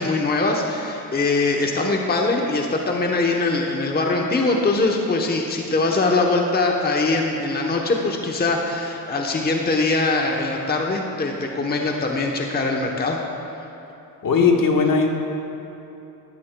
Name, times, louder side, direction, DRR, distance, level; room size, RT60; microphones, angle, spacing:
voice 1, 0.0-13.2, left 3 dB, 25° left, 1 dB, 0.9 m, -22 dB
voice 2, 14.2-15.1, left 5 dB, 60° left, 1 dB, 1.4 m, -17 dB
15.5 x 12.5 x 2.3 m, 3.0 s
cardioid pair, 85°, 37 cm